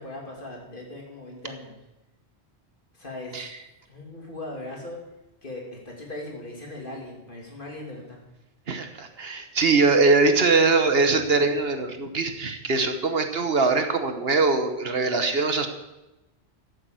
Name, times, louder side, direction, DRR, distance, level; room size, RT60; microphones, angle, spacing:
voice 1, 0.0-1.7 2.9-3.4 3.9-5.0 5.4-8.2, left 1 dB, 50° left, -1 dB, 3.1 m, -39 dB
voice 2, 8.7-15.7, right 3 dB, 60° right, 7 dB, 1.4 m, -22 dB
13.5 x 7.8 x 7.8 m, 0.98 s
omnidirectional pair, 1.1 m